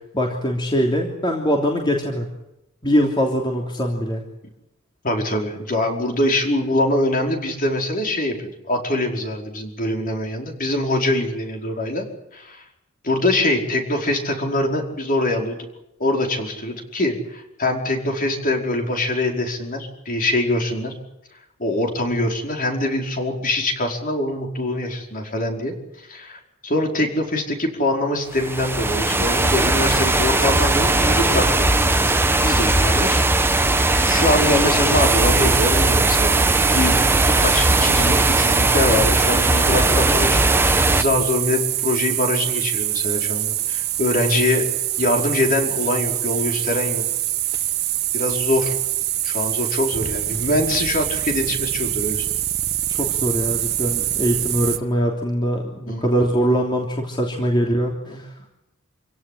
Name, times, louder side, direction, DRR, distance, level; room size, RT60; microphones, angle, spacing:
voice 1, 0.1-2.3 2.8-4.2 52.9-58.3, equal, 25° left, 0 dB, 3.2 m, -22 dB
voice 2, 5.0-12.1 12.3-12.6 13.0-15.6 16.0-20.9 21.6-25.7 26.1-31.6 32.4-33.7 34.0-36.4 36.7-37.0 37.3-44.7 45.0-47.0 48.1-48.8 49.2-52.3 55.9-56.0 58.1-58.2, left 1 dB, 45° left, 2 dB, 5.0 m, -23 dB
sound 1, 28.3-41.0, right 2 dB, 10° right, 1.4 m, -18 dB
sound 2, 35.0-54.8, right 13 dB, 50° right, 1.3 m, -24 dB
27.0 x 17.0 x 10.0 m, 0.89 s
head